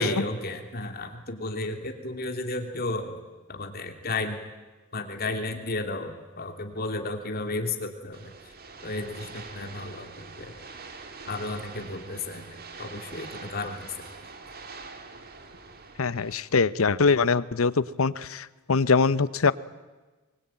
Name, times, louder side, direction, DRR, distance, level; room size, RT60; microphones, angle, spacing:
voice 1, 0.0-3.2 3.5-4.4 4.9-8.3 8.8-10.5 11.3-13.9, left 2 dB, 45° left, 4 dB, 2.9 m, -33 dB
sound 1, 8.1-16.3, right 4 dB, 45° right, 2.3 m, -44 dB
voice 2, 16.0-19.5, left 4 dB, 80° left, 17 dB, 0.8 m, -23 dB
24.0 x 22.0 x 9.1 m, 1.3 s
head